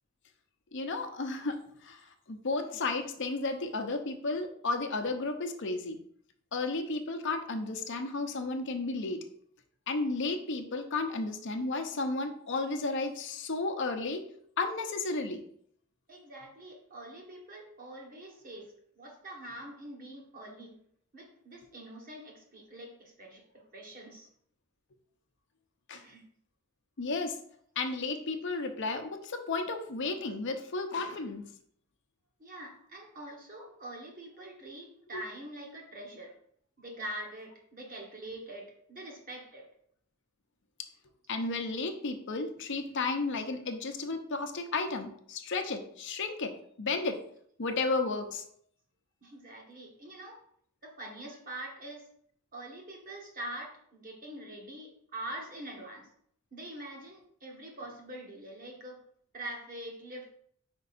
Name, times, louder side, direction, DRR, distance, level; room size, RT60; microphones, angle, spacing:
voice 1, 0.7-2.0 2.3-6.0 6.5-9.2 9.9-14.3 14.6-15.4 25.9-26.0 27.0-27.4 27.8-31.4 35.1-35.2 41.3-46.5 46.8-47.2 47.6-48.4, left 3 dB, 60° left, 5 dB, 0.7 m, -33 dB
voice 2, 16.1-20.8 21.1-24.3 25.9-26.2 32.4-36.3 36.8-39.7 49.2-50.4 50.8-52.1 52.5-56.1 56.5-59.0 59.3-60.3, right 1 dB, 40° right, 0 dB, 1.4 m, -44 dB
5.2 x 4.7 x 4.2 m, 0.64 s
head